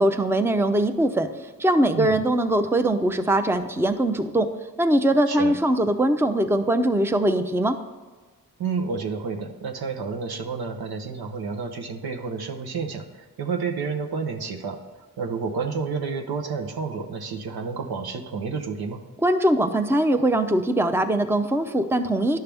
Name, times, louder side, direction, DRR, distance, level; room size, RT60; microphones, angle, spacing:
voice 1, 0.0-4.5 4.8-7.8 19.2-22.4, right 1 dB, 5° right, 8 dB, 0.5 m, -21 dB
voice 2, 1.9-2.2 5.3-5.6 8.6-19.0, right 5 dB, 85° right, 3 dB, 0.9 m, -30 dB
10.5 x 5.7 x 3.4 m, 1.4 s
cardioid pair, 55°, 36 cm